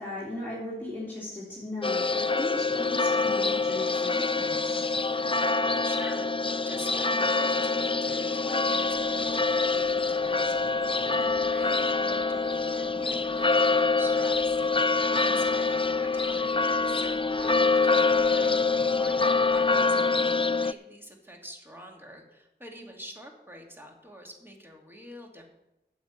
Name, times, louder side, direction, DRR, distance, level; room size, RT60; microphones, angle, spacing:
voice 1, 0.0-4.9 15.1-15.4, left 1 dB, 10° left, -8 dB, 3.5 m, -38 dB
sound 1, 1.8-20.7, left 4 dB, 30° left, 0.4 m, -25 dB
voice 2, 5.7-14.9 15.2-25.4, equal, 10° right, 0 dB, 2.6 m, -46 dB
sound 2, 8.8-19.9, equal, 40° right, 3.3 m, -52 dB
9.6 x 7.2 x 8.5 m, 0.91 s
wide cardioid pair, 45°, 19 cm